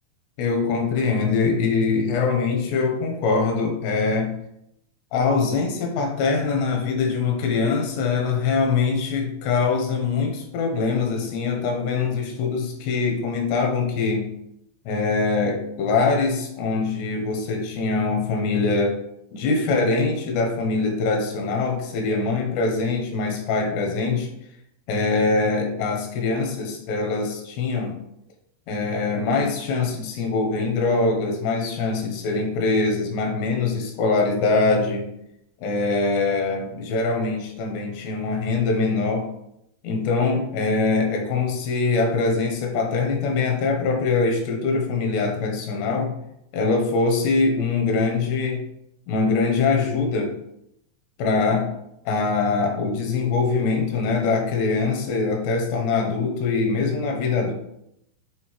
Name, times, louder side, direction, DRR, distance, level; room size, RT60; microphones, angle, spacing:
voice 1, 0.4-4.4 5.1-14.3 14.9-19.0 19.3-24.3 24.9-28.0 28.7-35.0 35.6-39.3 39.8-46.1 46.5-48.6 49.1-50.3 51.2-51.7 52.1-57.5, left 4 dB, 80° left, 2 dB, 3.0 m, -23 dB
9.1 x 3.7 x 3.1 m, 0.78 s
omnidirectional pair, 5.2 m